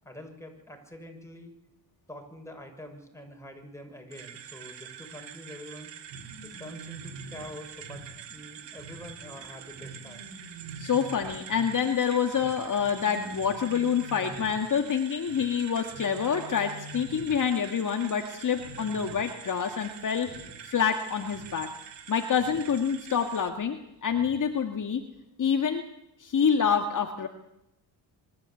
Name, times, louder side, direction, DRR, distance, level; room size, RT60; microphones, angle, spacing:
voice 1, 0.0-1.5 2.1-5.9 6.4-10.3, left 1 dB, 5° left, 3 dB, 6.3 m, -45 dB
sound 1, 4.1-23.5, right 9 dB, 70° right, 2.1 m, -46 dB
sound 2, 6.1-17.8 18.1-18.3 18.5-19.5 19.8-20.9 21.2-22.8 24.1-24.5 24.9-25.0, right 3 dB, 85° right, 2.6 m, -46 dB
voice 2, 10.8-20.3 20.6-21.7 22.1-25.0 25.4-25.8 26.2-27.3, left 7 dB, 45° left, 5 dB, 1.9 m, -27 dB
24.5 x 13.0 x 8.5 m, 0.84 s
cardioid pair, 80°, 44 cm